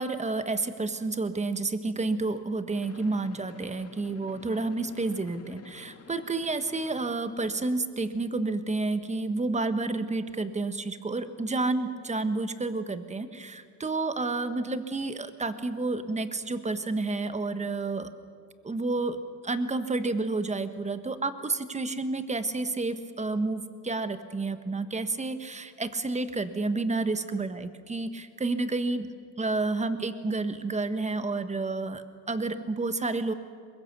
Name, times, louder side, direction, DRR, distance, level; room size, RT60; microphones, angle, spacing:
voice 1, 0.0-18.1 18.6-29.1 29.4-33.3, right 3 dB, 15° right, 11 dB, 1.3 m, -30 dB
sound 1, 2.7-7.2, left 5 dB, 35° left, 2.1 m, -51 dB
23.5 x 21.5 x 6.8 m, 2.2 s
cardioid pair, 100°, 40 cm